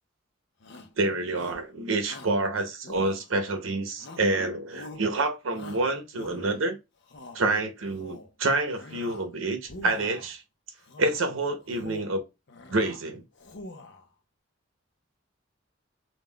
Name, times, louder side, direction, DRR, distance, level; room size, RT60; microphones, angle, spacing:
Shout, 0.6-1.0 1.3-1.7 2.0-2.4 2.8-3.5 4.0-4.4 4.7-5.1 5.5-6.6 7.0-7.4 7.8-8.3 8.7-9.3 9.6-10.3 10.8-11.2 11.6-12.2 12.5-13.0 13.3-14.1, left 2 dB, 60° left, 0.5 m, -45 dB
voice 1, 1.0-6.8 7.3-10.4 11.0-12.2 12.7-13.2, right 2 dB, 85° right, 0.7 m, -28 dB
2.3 x 2.3 x 3.6 m
head